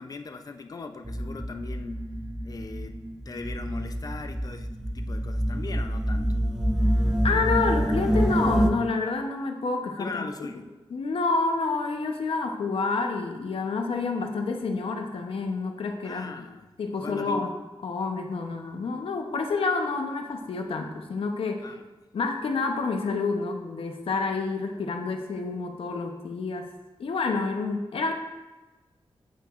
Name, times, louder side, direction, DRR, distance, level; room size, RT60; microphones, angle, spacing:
voice 1, 0.0-2.0 2.4-6.4 10.0-10.6 16.0-16.7 17.0-17.5 21.6-21.8, left 4 dB, 40° left, 7 dB, 0.5 m, -39 dB
sound 1, 1.0-8.7, equal, 5° right, 0.6 m, -27 dB
voice 2, 7.2-10.3 10.9-16.3 16.8-17.5 17.8-21.6 22.1-26.7 27.0-28.1, left 4 dB, 75° left, 4 dB, 0.8 m, -28 dB
8.3 x 8.2 x 2.5 m, 1.1 s
wide cardioid pair, 140°, 9 cm